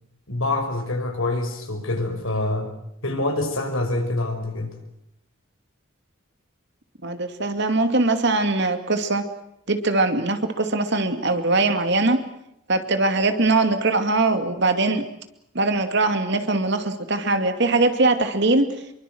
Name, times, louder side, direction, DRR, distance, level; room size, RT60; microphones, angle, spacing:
voice 1, 0.3-2.7 3.0-4.7, left 2 dB, 75° left, 5 dB, 5.6 m, -26 dB
voice 2, 7.0-9.2 9.7-12.2 12.7-15.0 15.5-18.7, right 2 dB, 55° right, 7 dB, 2.4 m, -21 dB
26.5 x 23.0 x 7.9 m, 0.80 s
head